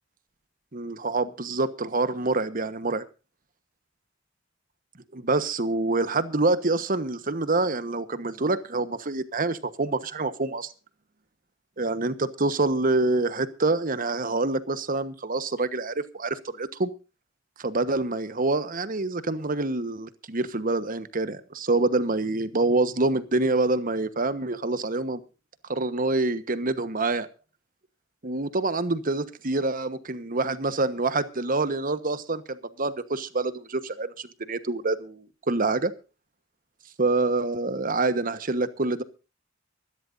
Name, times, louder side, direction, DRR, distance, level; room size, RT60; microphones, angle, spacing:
voice 1, 0.7-3.0 5.1-10.7 11.8-16.9 17.6-25.2 25.7-27.3 28.2-35.9 37.0-39.0, right 2 dB, 45° right, 12 dB, 1.3 m, -26 dB
25.0 x 12.5 x 2.7 m, 0.32 s
head